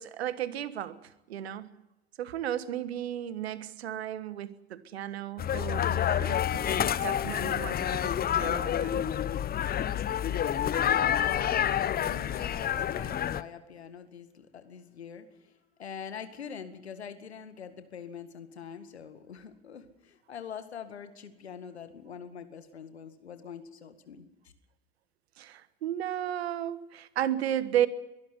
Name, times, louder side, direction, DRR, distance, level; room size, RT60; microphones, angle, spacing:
voice 1, 0.0-1.7 2.2-9.0 25.4-27.9, right 11 dB, 75° right, 16 dB, 1.4 m, -34 dB
sound 1, 5.4-13.4, left 10 dB, 30° left, 0.9 m, -28 dB
voice 2, 11.1-24.5, left 7 dB, 80° left, 11 dB, 2.0 m, -44 dB
22.5 x 12.5 x 9.7 m, 1.0 s
figure-of-eight pair, 75°, 32 cm